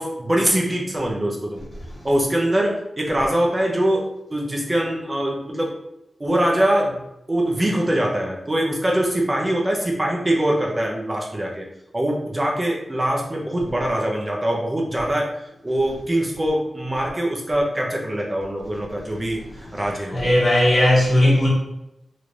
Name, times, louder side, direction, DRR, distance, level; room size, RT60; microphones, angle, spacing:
voice 1, 0.0-1.6 2.0-5.7 6.2-7.0 7.3-11.7 11.9-15.3 15.6-20.3, right 1 dB, 25° right, 0.7 m, -23 dB
voice 2, 20.1-21.5, left 1 dB, 55° left, 1.1 m, -16 dB
3.2 x 3.1 x 2.6 m
wide cardioid pair, 75°, 0 cm